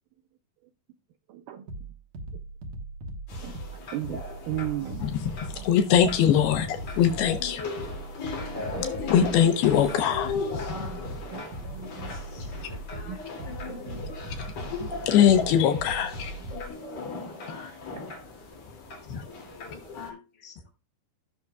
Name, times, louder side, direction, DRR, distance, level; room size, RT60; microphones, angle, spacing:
voice 1, 1.3-1.7 3.4-5.1 5.6-5.7 8.6-8.9 9.2-9.4 9.9-10.1 10.4-11.0 11.3-12.1 13.1-13.2 13.7-14.1 14.8-15.0 17.5-17.6 18.1-18.2, right 12 dB, 90° right, 1.8 m, -37 dB
sound 1, 1.7-16.7, right 2 dB, 60° right, 2.0 m, -39 dB
sound 2, 3.3-20.1, left 4 dB, 45° left, 3.4 m, -38 dB
voice 2, 5.0-7.6 9.1-10.4 15.0-16.3 19.1-19.2, left 9 dB, 85° left, 2.9 m, -22 dB
voice 3, 12.4-14.3 14.9-15.1 16.0-16.1 16.5-17.9 19.1-20.7, left 5 dB, 20° left, 2.8 m, -48 dB
15.5 x 6.5 x 2.3 m
omnidirectional pair, 4.4 m